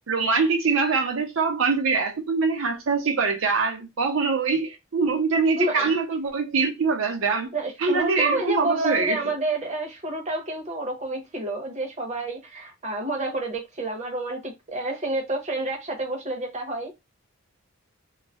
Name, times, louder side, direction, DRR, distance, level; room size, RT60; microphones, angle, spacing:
voice 1, 0.1-7.5 7.8-9.2, right 4 dB, 70° right, 0.5 m, -23 dB
voice 2, 5.6-5.9 7.5-16.9, right 2 dB, 35° right, 0.7 m, -29 dB
2.3 x 2.0 x 3.4 m
head